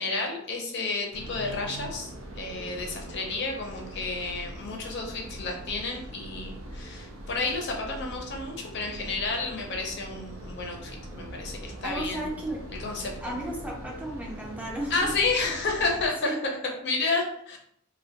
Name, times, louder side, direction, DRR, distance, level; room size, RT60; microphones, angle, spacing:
voice 1, 0.0-2.1 2.4-12.3 12.8-13.3 14.9-17.6, left 3 dB, 60° left, 1 dB, 0.5 m, -31 dB
sound 1, 1.1-16.1, right 1 dB, 70° right, 0.5 m, -42 dB
voice 2, 11.8-12.6 13.2-15.1 16.3-16.4, right 1 dB, 5° right, -2 dB, 0.4 m, -34 dB
2.1 x 2.1 x 2.7 m, 0.70 s
head